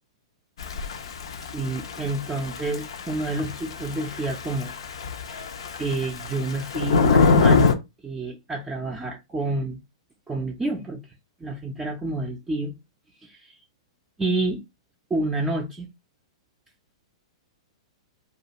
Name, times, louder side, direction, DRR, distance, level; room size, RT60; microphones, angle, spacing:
Thunder / Rain, 0.6-7.8, left 5 dB, 70° left, 0.5 m, -24 dB
voice 1, 1.4-4.7 5.3-5.5 5.8-7.7 8.0-9.8 10.3-11.0 11.4-12.7 13.2-13.6 14.2-14.6 15.1-15.9, right 2 dB, 15° right, 0.5 m, -29 dB
2.3 x 2.3 x 2.9 m
hypercardioid pair, 115°, 3 cm